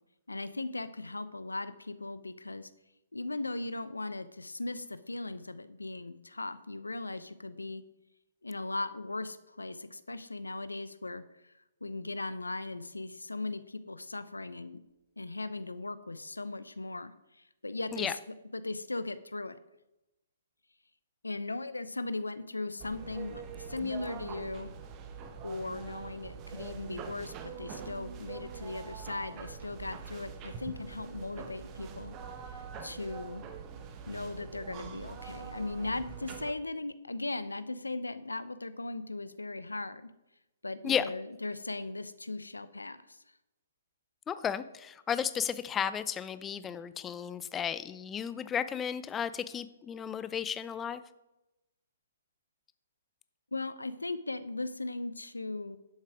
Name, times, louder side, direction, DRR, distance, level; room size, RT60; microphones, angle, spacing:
voice 1, 0.3-2.7 3.1-7.8 8.4-11.5 11.8-14.8 15.2-18.2 18.5-19.6 21.2-24.7 25.4-32.2 32.8-33.4 34.1-40.1 40.6-43.2 53.5-55.8, left 2 dB, 85° left, 14 dB, 0.7 m, -38 dB
sound 1, 22.8-36.5, right 6 dB, 25° right, 1.2 m, -44 dB
voice 2, 44.3-51.0, left 8 dB, 15° left, 14 dB, 0.5 m, -33 dB
11.5 x 7.4 x 5.0 m, 0.95 s
figure-of-eight pair, 130°, 0 cm